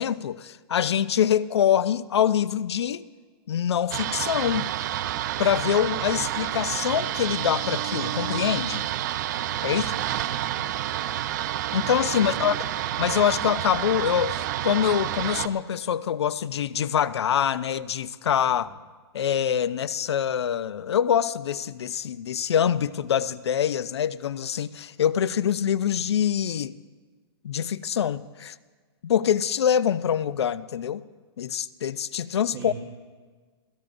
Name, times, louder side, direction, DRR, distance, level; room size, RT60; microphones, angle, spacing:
voice 1, 0.0-3.0 3.5-4.7 5.4-8.8 9.6-9.9 11.7-12.6 13.0-18.7 19.1-26.7 27.4-28.5 29.0-31.0 31.4-32.7, left 9 dB, 80° left, 0.6 m, -25 dB
sound 1, 3.9-15.5, right 12 dB, 45° right, 0.6 m, -29 dB
voice 2, 9.6-10.0 10.4-10.7 12.2-12.8 32.5-32.7, right 4 dB, 25° right, 4.3 m, -40 dB
29.5 x 16.5 x 2.6 m
hypercardioid pair, 150°, 14 cm